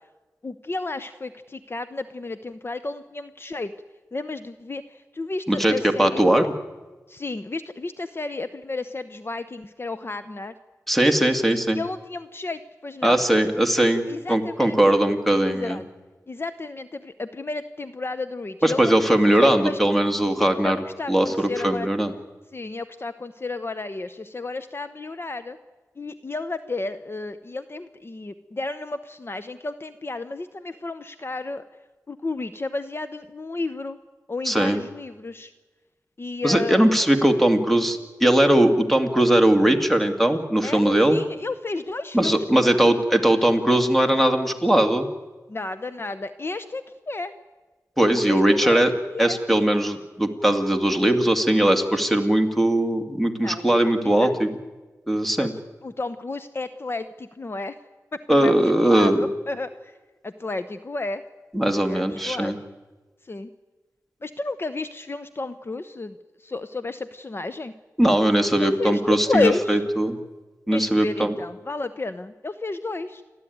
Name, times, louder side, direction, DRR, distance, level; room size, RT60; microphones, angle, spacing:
voice 1, 0.4-3.7 4.1-6.2 7.1-10.5 11.7-13.2 14.1-15.0 15.4-15.8 16.3-19.8 20.6-21.9 22.5-25.6 26.0-31.6 32.1-34.0 34.3-35.5 36.2-36.8 40.6-43.0 45.5-47.3 48.2-49.4 53.4-53.8 54.0-54.4 55.4-55.5 55.8-57.8 58.1-60.0 60.2-61.2 61.7-62.6 63.2-63.5 64.2-67.7 68.6-69.8 70.7-73.2, left 3 dB, 40° left, 12 dB, 0.9 m, -32 dB
voice 2, 5.5-6.5 10.9-11.8 13.0-14.0 14.3-15.8 18.6-20.8 21.1-22.1 34.5-34.8 36.4-41.2 42.1-45.1 48.0-48.9 49.2-54.5 55.1-55.5 58.3-59.2 61.5-62.6 68.0-70.1 70.7-71.3, right 1 dB, 5° left, 6 dB, 2.2 m, -20 dB
29.0 x 12.5 x 9.4 m, 1.2 s
wide cardioid pair, 70°, 6 cm